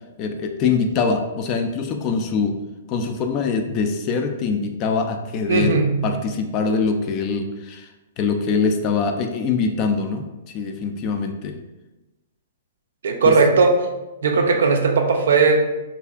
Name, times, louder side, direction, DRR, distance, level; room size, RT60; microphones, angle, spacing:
voice 1, 0.2-2.6 2.9-7.9 8.2-10.3 10.5-11.6 13.3-13.4, left 4 dB, 35° left, 5 dB, 0.3 m, -23 dB
voice 2, 5.5-6.0 13.0-13.9 14.2-15.6, right 4 dB, 75° right, 4 dB, 0.4 m, -17 dB
2.7 x 2.4 x 2.3 m, 1.0 s
hypercardioid pair, 130°, 0 cm